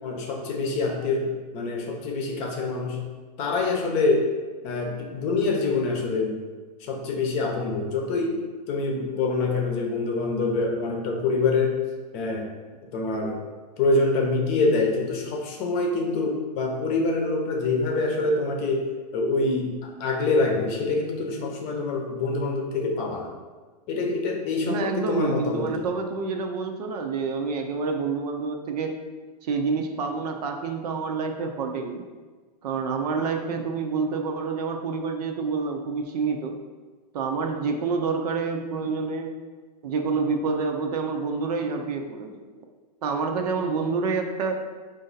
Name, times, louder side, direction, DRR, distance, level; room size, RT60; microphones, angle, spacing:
voice 1, 0.0-3.0 3.4-4.3 4.6-6.4 6.8-8.4 8.7-11.8 12.1-12.5 12.9-13.4 13.8-23.3 23.9-25.9, left 3 dB, 30° left, 1 dB, 0.7 m, -25 dB
voice 2, 24.7-28.9 29.4-32.0 32.6-36.5 37.1-39.3 39.8-42.4 43.0-44.6, right 4 dB, 70° right, 4 dB, 0.7 m, -28 dB
4.9 x 2.6 x 4.0 m, 1.4 s
supercardioid pair, 150°, 21 cm